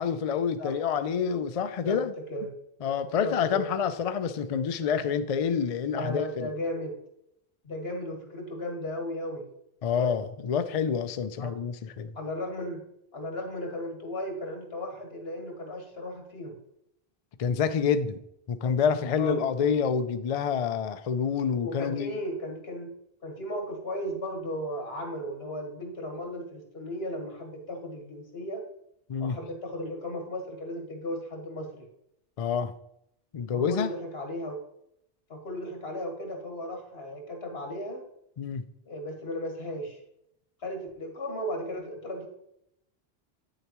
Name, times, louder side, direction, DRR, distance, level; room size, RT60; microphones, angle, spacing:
voice 1, 0.0-2.1 2.8-6.5 9.8-12.1 17.4-18.2 18.5-22.2 29.1-29.4 32.4-32.7 33.3-33.9 38.4-38.6, left 6 dB, 50° left, 0.4 m, -27 dB
voice 2, 3.2-3.7 5.9-6.9 7.6-9.5 11.4-11.6 12.2-12.8 13.1-16.6 19.1-19.4 21.6-22.9 23.2-28.6 29.2-31.9 33.5-34.6 35.3-38.0 38.9-40.0 40.6-42.3, left 1 dB, 80° left, 1.8 m, -35 dB
8.5 x 6.6 x 3.0 m
omnidirectional pair, 1.0 m